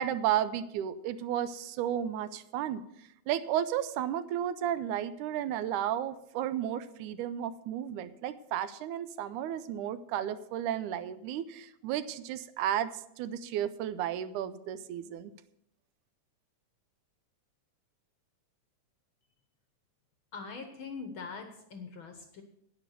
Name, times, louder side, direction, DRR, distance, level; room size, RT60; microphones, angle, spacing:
voice 1, 0.0-2.8 3.3-12.9 13.2-15.3, right 10 dB, 85° right, 13 dB, 2.1 m, -33 dB
voice 2, 20.3-22.4, left 4 dB, 60° left, 5 dB, 1.5 m, -42 dB
10.5 x 9.4 x 6.7 m, 0.79 s
omnidirectional pair, 3.5 m